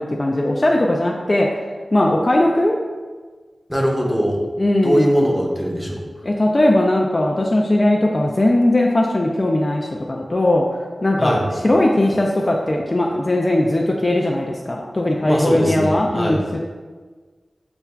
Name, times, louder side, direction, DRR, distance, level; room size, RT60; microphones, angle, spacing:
voice 1, 0.0-1.5 1.9-2.8 4.6-5.3 6.2-16.6, left 1 dB, 35° left, -1 dB, 0.3 m, -19 dB
voice 2, 3.7-4.4 4.8-6.0 11.2-11.5 15.3-16.4, equal, ahead, -1 dB, 0.6 m, -21 dB
6.8 x 2.3 x 2.2 m, 1.4 s
wide cardioid pair, 90°, 0 cm